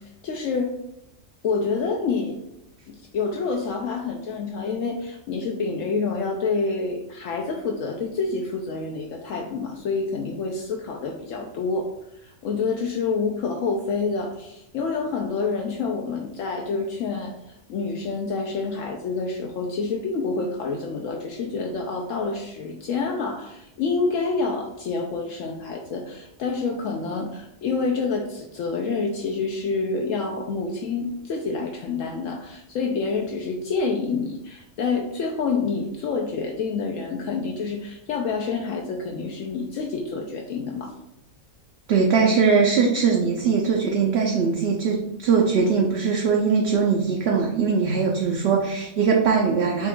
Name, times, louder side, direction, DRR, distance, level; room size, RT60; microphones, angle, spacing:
voice 1, 0.2-0.7 1.4-2.4 2.9-11.9 12.2-40.9, left 4 dB, 75° left, 1 dB, 0.9 m, -27 dB
voice 2, 41.9-49.9, right 5 dB, 60° right, 0 dB, 0.8 m, -21 dB
5.9 x 2.3 x 3.6 m, 0.84 s
omnidirectional pair, 1.4 m